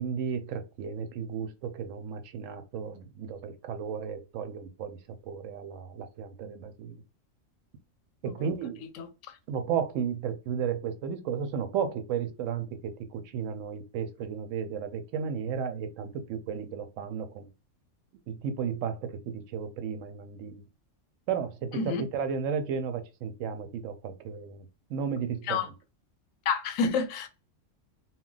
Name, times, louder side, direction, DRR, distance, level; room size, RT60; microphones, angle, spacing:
voice 1, 0.0-7.0 8.2-8.9 9.5-17.5 18.3-20.6 21.3-25.7, right 7 dB, 75° right, 0.9 m, -34 dB
voice 2, 9.0-9.4 21.7-22.0 25.5-25.7 26.5-27.3, left 5 dB, 85° left, 1.0 m, -29 dB
2.3 x 2.1 x 3.8 m
omnidirectional pair, 1.3 m